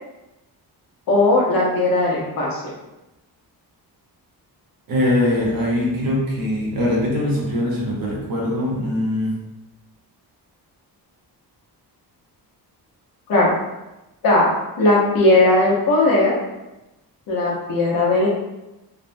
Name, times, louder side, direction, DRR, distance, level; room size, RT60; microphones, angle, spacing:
voice 1, 1.1-2.6 13.3-13.5 14.2-14.5 14.8-16.4 17.3-18.3, left 2 dB, 55° left, -5 dB, 0.9 m, -17 dB
voice 2, 4.9-9.3, left 1 dB, 55° right, -3 dB, 0.9 m, -22 dB
3.3 x 2.2 x 2.6 m, 0.98 s
wide cardioid pair, 180°, 41 cm